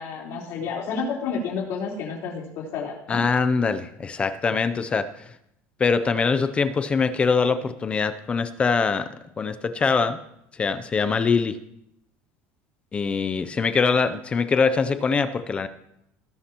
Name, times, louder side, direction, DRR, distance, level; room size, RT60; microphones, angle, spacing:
voice 1, 0.0-3.2, left 5 dB, 55° left, -3 dB, 3.9 m, -30 dB
voice 2, 3.1-5.1 5.8-9.1 9.4-10.2 10.6-11.6 12.9-15.7, left 5 dB, 20° left, 11 dB, 0.5 m, -23 dB
19.0 x 9.6 x 3.0 m, 0.78 s
cardioid pair, 155°, 6 cm